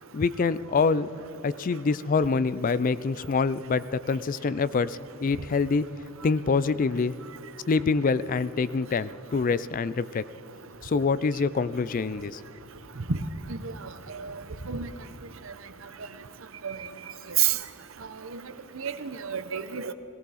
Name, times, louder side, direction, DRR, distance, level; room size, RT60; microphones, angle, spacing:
voice 1, 0.1-1.1 1.4-5.8 6.2-7.1 7.7-10.2 10.8-12.4, left 4 dB, 40° left, 16 dB, 0.4 m, -25 dB
voice 2, 18.7-19.9, right 8 dB, 70° right, 11 dB, 0.8 m, -29 dB
18.0 x 17.0 x 4.2 m, 2.9 s
head